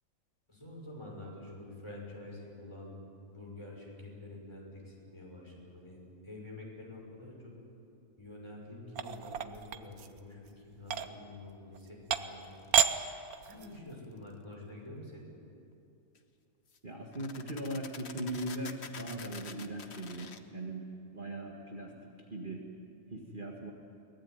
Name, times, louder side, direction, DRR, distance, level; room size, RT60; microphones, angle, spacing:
voice 1, 0.5-3.0 3.2-6.0 6.2-7.5 8.2-12.7 13.4-15.3, left 2 dB, 20° left, -2 dB, 6.0 m, -47 dB
sound 1, 8.9-10.2 10.8-11.1 11.7-11.8 12.1-12.4 12.7-12.9 13.3-13.8, right 9 dB, 85° right, 1.4 m, -29 dB
sound 2, 12.6-13.0 16.1-16.2 16.7-16.8 17.1-20.4, left 5 dB, 50° left, 1.3 m, -47 dB
voice 2, 16.8-20.8 21.1-21.9 22.3-22.7 23.1-23.7, right 1 dB, 35° right, -1 dB, 2.0 m, -39 dB
23.0 x 19.0 x 9.5 m, 2.6 s
omnidirectional pair, 1.5 m